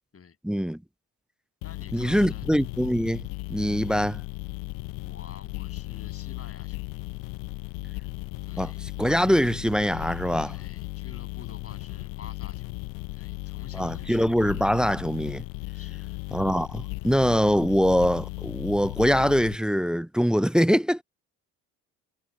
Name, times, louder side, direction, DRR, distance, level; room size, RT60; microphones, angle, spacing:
voice 1, 0.4-0.8 1.9-4.2 8.6-8.7 9.0-10.5 13.7-15.4 16.3-21.0, equal, ahead, 0.4 m, -23 dB
sound 1, 1.6-19.6, left 24 dB, 85° left, 0.6 m, -36 dB
voice 2, 1.6-2.5 5.0-7.2 8.4-8.8 10.4-12.7 13.1-14.3 15.7-16.2, left 6 dB, 40° left, 7.9 m, -49 dB
supercardioid pair, 75°, 35 cm